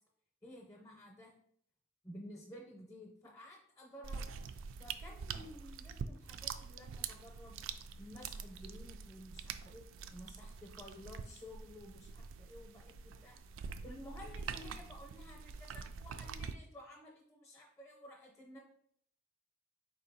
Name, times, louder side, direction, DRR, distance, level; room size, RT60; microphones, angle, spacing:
voice 1, 0.4-1.3 2.0-4.3 4.8-7.6 8.0-9.8 10.1-13.4 13.8-18.6, left 1 dB, 15° left, 0 dB, 0.6 m, -53 dB
sound 1, 4.0-16.5, right 6 dB, 70° right, 0.3 m, -45 dB
4.4 x 2.8 x 4.0 m, 0.66 s
head